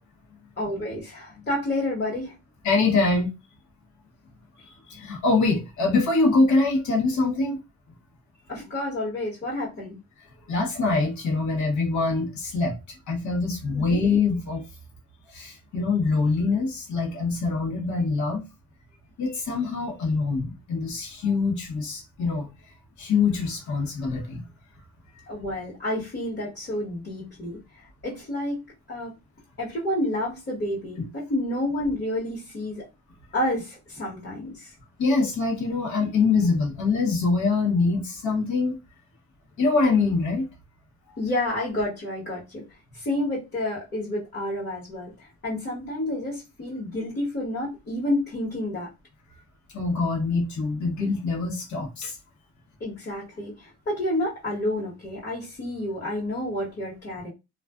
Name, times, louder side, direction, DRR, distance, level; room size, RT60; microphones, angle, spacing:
voice 1, 0.6-2.3 8.5-10.0 13.7-14.0 25.3-28.6 28.9-29.1 29.6-32.9 33.3-34.7 41.2-42.6 42.9-45.1 45.4-48.9 52.8-57.3, left 1 dB, 35° left, 1.2 m, -29 dB
voice 2, 2.6-3.3 4.6-7.6 10.5-14.7 15.3-18.4 19.2-22.5 23.0-24.5 35.0-38.8 39.6-40.5 49.7-52.2, left 3 dB, 70° left, 1.0 m, -24 dB
2.4 x 2.2 x 2.3 m
cardioid pair, 90°, 30 cm